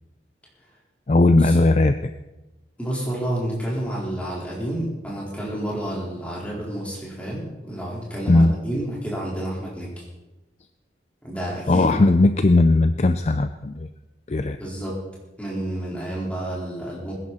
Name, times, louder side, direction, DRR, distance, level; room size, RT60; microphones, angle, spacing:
voice 1, 1.1-2.1 8.3-8.5 11.7-13.9 14.3-14.6, left 2 dB, 35° left, 10 dB, 0.4 m, -18 dB
voice 2, 2.8-10.1 11.2-11.9 14.6-14.9 15.4-17.1, right 1 dB, 5° left, -5 dB, 4.3 m, -30 dB
21.0 x 11.0 x 4.2 m, 1.0 s
head